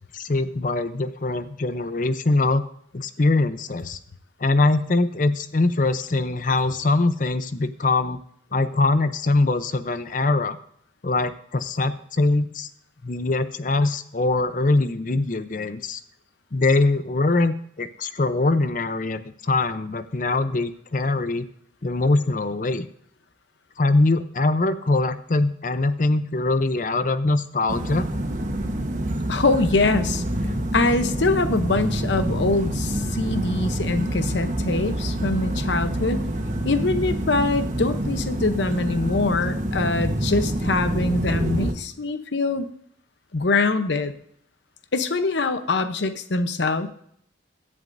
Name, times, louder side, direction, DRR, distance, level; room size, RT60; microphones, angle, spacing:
voice 1, 0.1-2.6 2.9-4.0 4.4-8.2 8.5-10.6 11.0-12.7 13.0-16.0 16.5-21.5 21.8-22.9 23.8-28.1, left 2 dB, 45° left, 12 dB, 0.6 m, -22 dB
sound 1, 27.7-41.7, right 1 dB, 40° right, 1.2 m, -27 dB
voice 2, 29.3-30.2 30.7-36.3 36.6-42.7 43.3-44.1 44.9-46.9, left 3 dB, 70° left, 10 dB, 0.8 m, -23 dB
17.0 x 11.0 x 2.6 m, 0.68 s
head